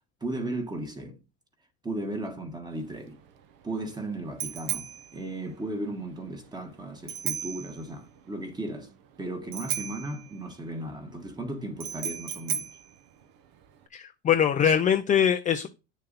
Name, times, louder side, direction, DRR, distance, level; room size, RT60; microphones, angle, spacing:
voice 1, 0.2-1.2 1.8-3.2 3.6-8.9 9.2-12.7, right 1 dB, 10° right, 1.4 m, -35 dB
Bicycle bell, 2.7-13.9, right 9 dB, 60° right, 1.2 m, -37 dB
voice 2, 13.9-15.7, left 8 dB, 20° left, 0.5 m, -23 dB
9.3 x 6.7 x 4.1 m
cardioid pair, 145°, 40 cm